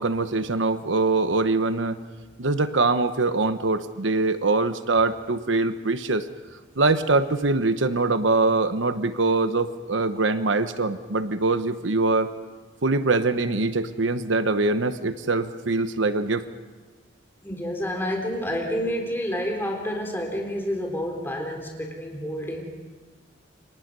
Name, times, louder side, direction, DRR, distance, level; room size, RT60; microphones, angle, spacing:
voice 1, 0.0-2.0 2.4-6.3 6.8-12.3 12.8-16.4, right 3 dB, 75° right, 10 dB, 1.0 m, -23 dB
voice 2, 17.4-22.6, equal, 10° left, 1 dB, 3.8 m, -29 dB
29.0 x 25.5 x 5.4 m, 1.3 s
head